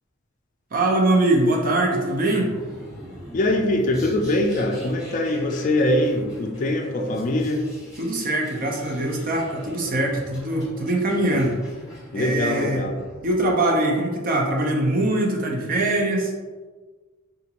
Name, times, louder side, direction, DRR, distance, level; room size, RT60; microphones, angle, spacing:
voice 1, 0.7-2.5 8.0-11.6 12.1-12.8 13.2-16.3, right 1 dB, 45° right, 1 dB, 0.6 m, -22 dB
sound 1, 0.8-13.6, equal, 5° right, 1.4 m, -43 dB
voice 2, 3.3-7.6 12.1-13.0, left 1 dB, 40° left, 3 dB, 0.4 m, -23 dB
3.8 x 2.5 x 2.9 m, 1.3 s
head